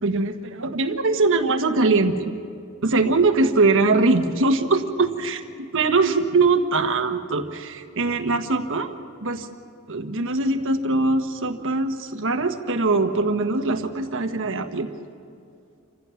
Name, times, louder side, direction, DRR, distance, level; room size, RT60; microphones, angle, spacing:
voice 1, 0.0-2.3 2.8-5.4 5.7-8.9 9.2-9.5 9.9-14.9, right 3 dB, 60° right, 7 dB, 1.3 m, -22 dB
28.0 x 15.5 x 7.1 m, 2.5 s
head